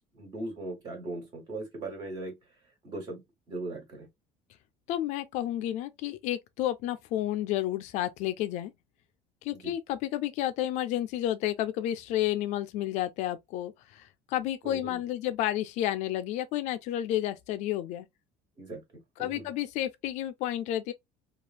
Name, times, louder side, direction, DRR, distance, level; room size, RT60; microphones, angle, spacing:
voice 1, 0.1-2.4 2.8-4.1 9.5-9.7 14.6-15.0 18.6-18.8 19.2-19.5, right 2 dB, 30° right, 1.6 m, -39 dB
voice 2, 4.9-8.7 9.4-18.1 19.2-20.9, left 13 dB, 60° left, 0.4 m, -31 dB
3.1 x 2.3 x 2.3 m
cardioid pair, 155°, 14 cm